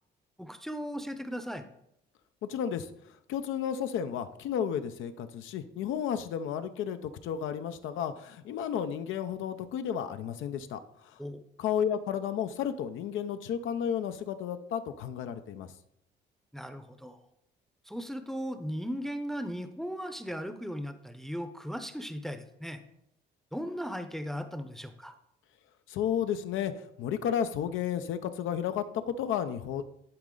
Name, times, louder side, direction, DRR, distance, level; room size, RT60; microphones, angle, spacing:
voice 1, 0.4-1.6 11.2-11.4 16.5-17.2 17.9-22.8 23.5-25.1, equal, ahead, 9 dB, 0.6 m, -37 dB
voice 2, 2.4-11.2 11.6-15.7 25.9-29.8, left 8 dB, 85° left, 9 dB, 0.6 m, -32 dB
10.5 x 4.0 x 3.8 m, 0.77 s
cardioid pair, 90°, 20 cm